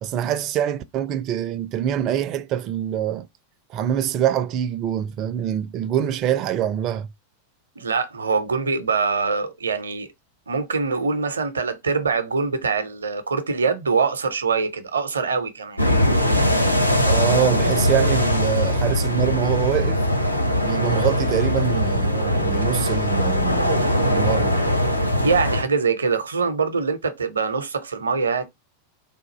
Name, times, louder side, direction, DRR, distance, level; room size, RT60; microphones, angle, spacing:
voice 1, 0.0-3.3 3.7-7.1 17.0-20.0 20.6-24.7, right 10 dB, 35° right, 0.4 m, -25 dB
voice 2, 7.8-10.1 10.5-15.8 25.2-28.4, right 4 dB, 70° right, 0.7 m, -23 dB
sound 1, 15.8-25.6, left 1 dB, 90° left, 0.7 m, -21 dB
3.6 x 2.6 x 3.9 m
figure-of-eight pair, 90°, 0 cm